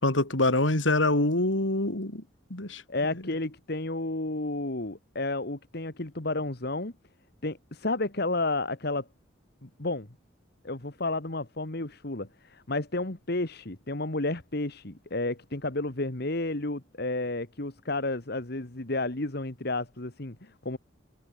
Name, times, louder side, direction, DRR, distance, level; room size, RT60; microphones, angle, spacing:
voice 1, 0.0-2.2 2.5-3.3, left 2 dB, 75° left, 3.7 m, -26 dB
voice 2, 2.9-6.9 7.4-9.1 9.6-10.1 10.6-20.8, left 2 dB, 55° left, 1.9 m, -31 dB
head